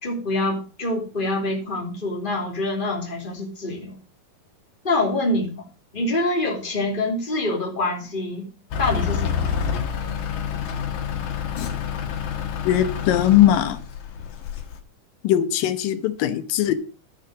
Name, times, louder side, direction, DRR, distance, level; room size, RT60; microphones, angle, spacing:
voice 1, 0.0-4.0 4.8-5.7 5.9-8.5 8.8-9.5, left 2 dB, 15° left, 1 dB, 2.7 m, -25 dB
Truck / Idling, 8.7-14.8, left 7 dB, 65° left, 2.8 m, -28 dB
voice 2, 12.6-13.8 15.2-16.8, left 12 dB, 90° left, 10 dB, 2.8 m, -19 dB
11.5 x 7.3 x 6.3 m, 0.33 s
omnidirectional pair, 3.9 m